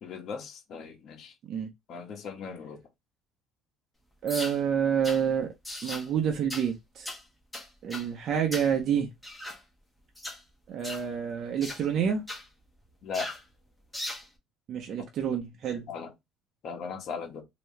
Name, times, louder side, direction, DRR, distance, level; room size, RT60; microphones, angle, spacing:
voice 1, 0.0-1.3 1.9-2.8 13.0-13.3 15.0-15.1 15.9-16.1 16.6-17.4, left 5 dB, 50° left, 1.5 m, -38 dB
voice 2, 4.2-5.5 5.8-7.1 7.8-9.1 10.7-12.2 14.7-15.9, right 8 dB, 45° right, 0.9 m, -28 dB
sound 1, 4.3-4.6 5.0-5.2 5.6-6.1 6.5-6.7 7.0-7.2 7.5-8.1 8.5-8.7 9.2-9.6 10.1-10.4 10.8-11.1 11.6-11.8 12.3-12.4 13.1-13.4 13.9-14.3, left 1 dB, 5° left, 1.4 m, -38 dB
3.4 x 3.0 x 3.3 m
cardioid pair, 140°, 0 cm